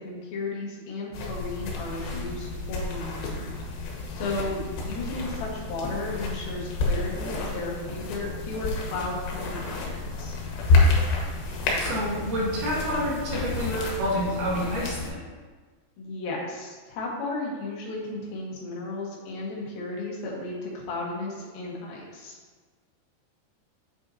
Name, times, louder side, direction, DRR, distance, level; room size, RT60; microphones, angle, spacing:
voice 1, 0.0-3.5 4.1-10.4 16.0-22.4, left 2 dB, 65° left, -3 dB, 2.9 m, -34 dB
sound 1, 1.1-15.1, left 3 dB, 85° left, 3.3 m, -29 dB
voice 2, 11.8-15.2, equal, 60° right, -6 dB, 2.6 m, -28 dB
8.0 x 6.8 x 2.7 m, 1.4 s
omnidirectional pair, 4.8 m